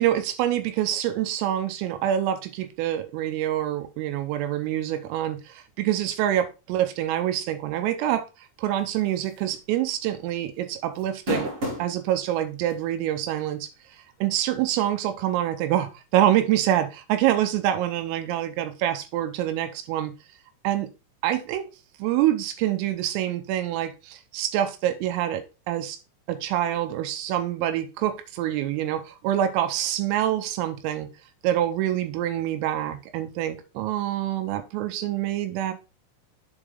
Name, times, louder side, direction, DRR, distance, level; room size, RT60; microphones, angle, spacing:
voice 1, 0.0-8.3 8.6-11.5 11.8-13.7 14.2-20.1 20.6-20.9 21.2-21.7 22.0-26.0 26.3-31.1 31.4-35.7, right 12 dB, 90° right, 3.4 m, -26 dB
sound 1, 9.3-9.5 9.9-10.0 11.0-11.9 12.7-12.8 14.4-14.5, left 1 dB, 35° right, 2.6 m, -29 dB
7.2 x 4.9 x 3.7 m
omnidirectional pair, 5.9 m